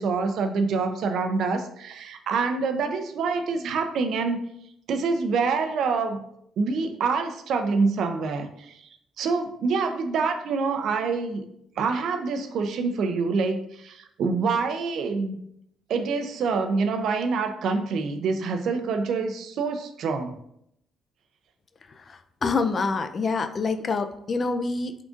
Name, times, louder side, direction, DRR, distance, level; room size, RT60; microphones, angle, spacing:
voice 1, 0.0-4.4 4.9-6.2 6.6-8.8 9.2-11.4 11.8-15.4 15.9-20.4, right 4 dB, 70° right, 7 dB, 0.4 m, -26 dB
voice 2, 21.9-25.0, left 4 dB, 40° left, 9 dB, 0.3 m, -27 dB
3.6 x 2.5 x 3.6 m, 0.74 s
cardioid pair, 90°, 0 cm